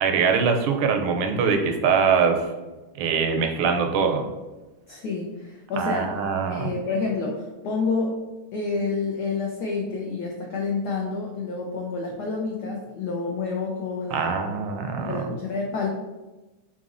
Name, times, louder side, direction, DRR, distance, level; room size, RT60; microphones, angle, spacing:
voice 1, 0.0-2.4 3.0-4.3 5.8-6.7 14.1-15.2, right 6 dB, 80° right, 5 dB, 1.4 m, -23 dB
voice 2, 4.9-6.1 6.5-8.1 8.5-14.7 15.1-15.9, left 4 dB, 90° left, -1 dB, 0.9 m, -29 dB
4.0 x 3.7 x 2.5 m, 1.1 s
omnidirectional pair, 2.4 m